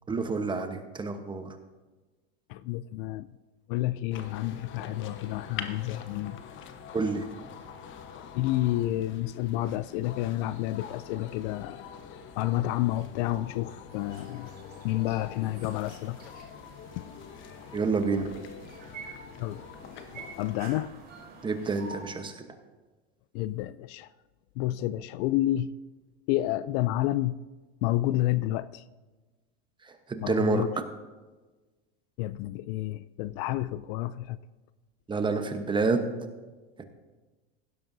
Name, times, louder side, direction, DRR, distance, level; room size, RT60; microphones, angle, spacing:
voice 1, 0.1-1.6 6.9-7.3 17.7-18.3 21.4-22.5 29.8-30.6 35.1-36.1 36.8-36.9, right 4 dB, 15° right, 8 dB, 1.0 m, -28 dB
voice 2, 2.5-3.3 3.7-6.4 8.3-11.8 12.4-14.5 14.8-16.2 17.0-17.1 19.4-19.6 20.4-20.9 23.3-24.1 24.6-25.7 26.3-27.4 27.8-28.8 30.2-30.7 32.2-34.4, left 15 dB, 55° left, 16 dB, 0.4 m, -30 dB
sound 1, 4.1-20.6, left 7 dB, 40° left, 1.1 m, -45 dB
sound 2, 13.9-22.0, right 4 dB, 30° right, 2.9 m, -49 dB
16.0 x 12.0 x 2.7 m, 1.2 s
supercardioid pair, 125°, 32 cm